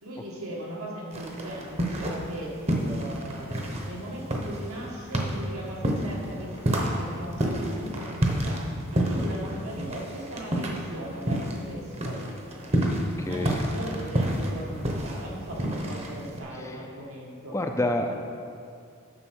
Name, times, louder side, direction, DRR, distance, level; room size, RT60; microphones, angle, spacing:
voice 1, 0.0-12.2 13.2-17.6 18.1-18.2, right 1 dB, 80° right, -3 dB, 1.8 m, -38 dB
sound 1, 1.1-2.4 2.7-11.7 11.9-16.4, right 1 dB, 30° right, 0.9 m, -29 dB
voice 2, 13.2-13.7 16.6-16.7 17.5-18.1, left 1 dB, 15° left, 4 dB, 0.4 m, -28 dB
9.5 x 6.7 x 4.6 m, 2.4 s
head